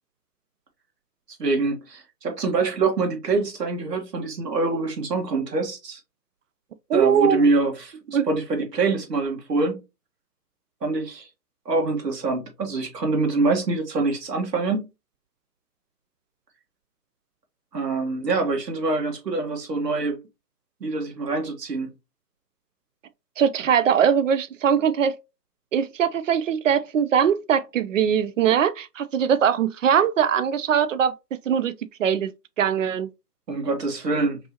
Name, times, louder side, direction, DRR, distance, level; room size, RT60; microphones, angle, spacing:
voice 1, 1.4-6.0 6.9-9.8 10.8-11.3 11.6-14.9 17.7-20.2 20.8-21.9 33.5-34.4, right 3 dB, 80° right, 1.7 m, -25 dB
voice 2, 6.9-7.4 8.1-8.3 23.4-25.2 25.7-31.1 31.5-31.7 32.0-32.3 32.6-33.1, right 8 dB, 55° right, 0.5 m, -21 dB
5.3 x 2.7 x 2.8 m
hypercardioid pair, 145°, 48 cm